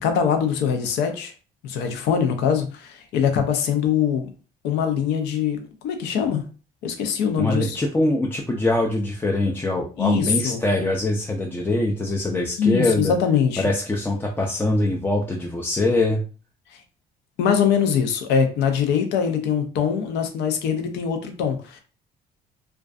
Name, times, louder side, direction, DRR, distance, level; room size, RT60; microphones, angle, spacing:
voice 1, 0.0-1.3 1.6-4.3 4.6-6.5 6.8-7.8 10.0-10.6 12.6-13.6 16.7-16.8 17.4-21.8, left 7 dB, 85° left, 6 dB, 0.5 m, -22 dB
voice 2, 7.4-13.1 13.6-16.2, left 2 dB, 10° left, -1 dB, 0.3 m, -23 dB
2.4 x 2.3 x 2.3 m, 0.36 s
cardioid pair, 110°, 17 cm